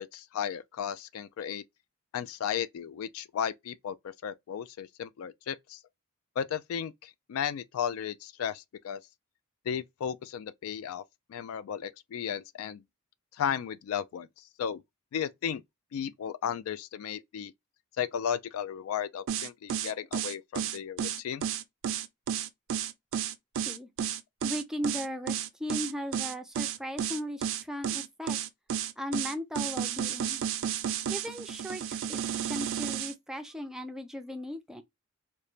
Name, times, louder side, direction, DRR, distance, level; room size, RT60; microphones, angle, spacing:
voice 1, 0.0-1.6 2.1-4.0 4.2-5.8 6.4-9.0 9.7-11.0 11.3-12.8 13.4-14.3 14.6-14.8 15.1-15.6 15.9-17.5 18.0-21.4, left 8 dB, 70° left, 0.3 m, -34 dB
sound 1, 19.3-33.1, right 9 dB, 65° right, 0.4 m, -32 dB
voice 2, 24.4-28.4 29.0-30.4 31.1-34.8, equal, 5° right, 0.4 m, -37 dB
3.1 x 2.1 x 2.4 m
head